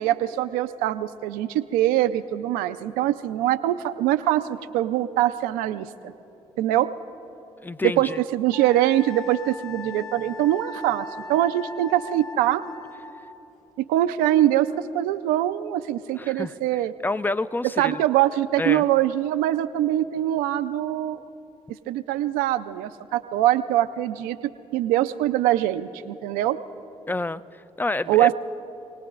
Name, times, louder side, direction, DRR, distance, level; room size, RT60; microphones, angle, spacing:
voice 1, 0.0-6.1 6.6-6.9 7.8-12.6 13.8-16.9 17.6-21.2 21.9-24.4 24.7-26.6 28.1-28.3, right 13 dB, 85° right, 11 dB, 0.5 m, -23 dB
voice 2, 7.6-8.2 16.2-16.5 17.0-18.0 18.6-18.9 27.1-28.3, left 2 dB, 15° left, 15 dB, 0.5 m, -28 dB
Wind instrument woodwind instrument, 8.5-13.4, left 3 dB, 65° left, 2.3 m, -39 dB
28.0 x 18.5 x 2.5 m, 2.9 s
hypercardioid pair, 50°, 14 cm